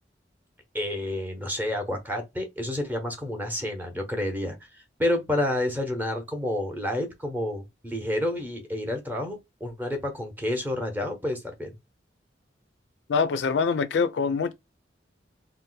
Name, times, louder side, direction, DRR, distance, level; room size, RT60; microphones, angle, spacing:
voice 1, 0.7-4.6 5.0-11.7, left 1 dB, 10° right, 0.8 m, -29 dB
voice 2, 13.1-14.5, left 5 dB, 70° left, 0.4 m, -24 dB
2.6 x 2.1 x 3.8 m
head